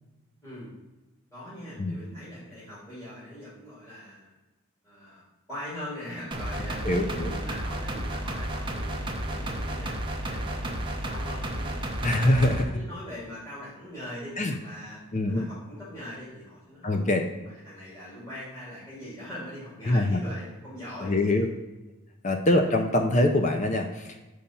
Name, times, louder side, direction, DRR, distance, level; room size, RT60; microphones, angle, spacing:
voice 1, 1.3-4.3 4.8-12.3 12.7-14.4 14.6-15.0 15.3-17.1 17.4-21.5, left 1 dB, 15° left, -12 dB, 2.4 m, -42 dB
sound 1, 6.3-12.6, right 1 dB, 20° right, 0.8 m, -32 dB
voice 2, 6.8-7.3 12.0-12.8 14.4-14.6 15.1-15.5 16.8-17.3 19.9-20.2 21.0-21.5 22.2-24.2, left 1 dB, 35° left, 5 dB, 0.5 m, -24 dB
5.4 x 5.0 x 5.7 m, 1.1 s
head